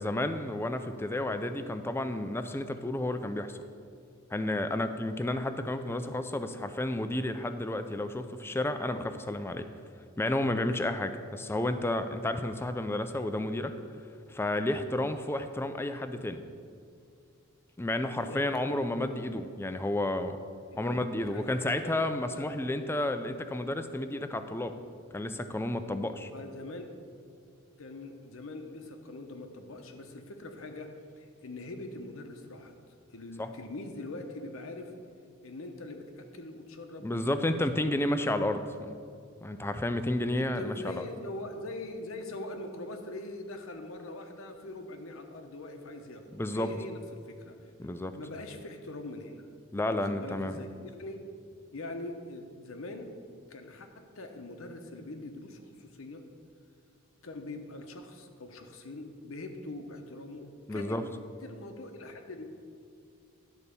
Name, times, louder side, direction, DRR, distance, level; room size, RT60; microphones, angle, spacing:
voice 1, 0.0-3.6 4.3-9.7 10.2-13.7 14.3-16.4 17.8-20.4 20.8-24.7 25.1-26.3 33.4-33.5 37.0-39.0 39.4-40.9 46.3-46.7 47.8-48.2 49.7-50.6 60.7-61.0, left 1 dB, 10° left, 9 dB, 0.4 m, -31 dB
voice 2, 18.2-18.8 19.1-19.2 20.7-21.0 21.3-22.0 22.3-22.5 26.3-26.9 27.8-32.7 33.1-34.9 35.4-37.7 38.8-38.9 40.3-47.0 47.3-47.7 48.2-49.3 49.9-50.7 51.0-51.2 51.7-53.1 53.5-56.2 57.2-61.0 61.4-62.5, left 2 dB, 70° left, 5 dB, 0.9 m, -43 dB
11.0 x 4.1 x 6.8 m, 2.3 s
head